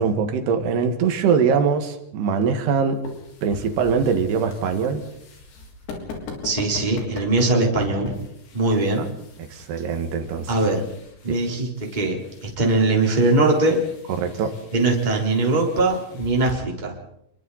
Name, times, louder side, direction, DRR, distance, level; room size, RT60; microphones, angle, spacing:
voice 1, 0.0-3.0 3.4-5.0 9.4-10.5 11.3-11.4 14.1-14.5, right 6 dB, 70° right, 6 dB, 3.8 m, -22 dB
sound 1, 2.6-16.5, left 3 dB, 85° left, 6.1 m, -41 dB
voice 2, 6.4-8.1 8.5-9.0 10.5-10.8 11.2-13.8 14.7-16.9, right 2 dB, 10° right, -1 dB, 3.4 m, -21 dB
29.0 x 22.5 x 4.2 m, 0.75 s
omnidirectional pair, 5.1 m